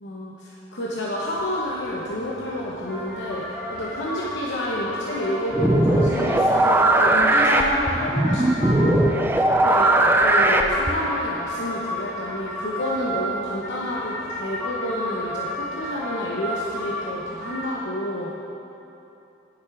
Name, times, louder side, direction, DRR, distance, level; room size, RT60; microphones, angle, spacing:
voice 1, 0.0-9.9 10.2-18.3, left 1 dB, 70° left, -5 dB, 0.9 m, -29 dB
sound 1, 1.1-17.6, equal, 5° left, 2.2 m, -34 dB
sound 2, 5.5-11.1, right 1 dB, 10° right, 0.4 m, -19 dB
10.5 x 6.8 x 4.8 m, 2.9 s
head